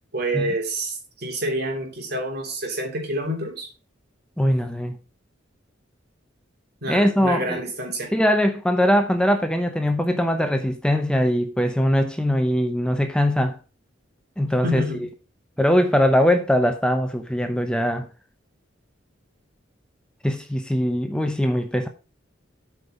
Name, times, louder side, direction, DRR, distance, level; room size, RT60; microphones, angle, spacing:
voice 1, 0.1-3.7 6.8-8.1 14.6-15.1, right 1 dB, 55° right, 3.1 m, -28 dB
voice 2, 4.4-5.0 6.9-7.6 8.1-13.6 14.4-14.8 15.6-18.1 20.2-21.9, equal, 5° left, 0.7 m, -21 dB
8.2 x 5.3 x 5.2 m
head